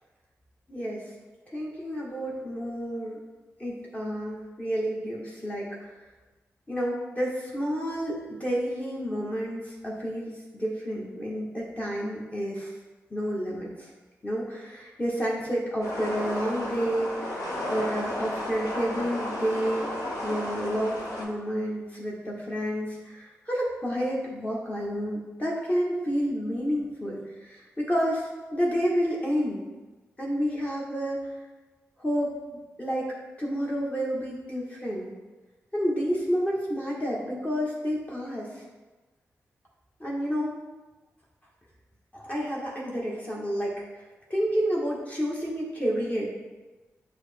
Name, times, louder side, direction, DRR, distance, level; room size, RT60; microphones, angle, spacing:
voice 1, 0.7-1.1 1.5-3.2 3.6-6.0 6.7-12.7 13.1-13.9 14.2-19.9 20.2-29.6 30.2-31.3 32.0-32.3 32.8-33.1 33.4-35.1 35.7-38.6 40.0-40.6 42.1-44.0 44.3-46.3, equal, 25° left, -4 dB, 0.9 m, -30 dB
sound 1, 15.8-21.2, left 1 dB, 80° left, 0.8 m, -33 dB
6.1 x 2.0 x 3.3 m, 1.2 s
supercardioid pair, 40°, 6 cm